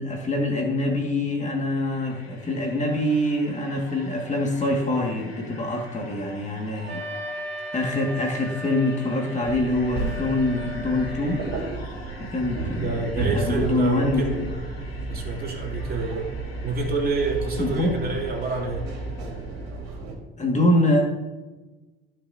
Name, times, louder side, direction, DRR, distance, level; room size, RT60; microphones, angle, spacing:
voice 1, 0.0-7.0 7.7-11.4 12.2-14.2 17.6-18.0 20.4-21.0, left 1 dB, 25° left, 1 dB, 2.0 m, -24 dB
sound 1, 1.3-19.9, left 3 dB, 90° left, 1.9 m, -46 dB
Wind instrument woodwind instrument, 6.9-11.8, equal, 85° right, 1.8 m, -37 dB
sound 2, 9.4-20.1, right 3 dB, 65° right, 3.1 m, -33 dB
voice 2, 12.7-14.8 15.1-16.3 16.6-18.9, right 3 dB, 30° right, -2 dB, 3.1 m, -28 dB
16.0 x 5.9 x 2.8 m, 1.2 s
hypercardioid pair, 75°, 29 cm